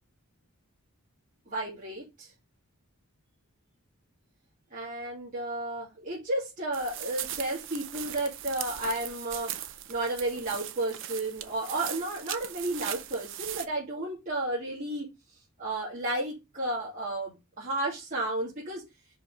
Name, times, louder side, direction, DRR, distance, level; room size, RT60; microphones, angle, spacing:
voice 1, 1.5-2.3 4.7-9.5 9.9-15.1 15.6-18.8, right 1 dB, 35° right, 2.5 m, -32 dB
sound 1, 6.7-13.7, right 12 dB, 55° right, 0.6 m, -39 dB
5.6 x 5.0 x 3.7 m
head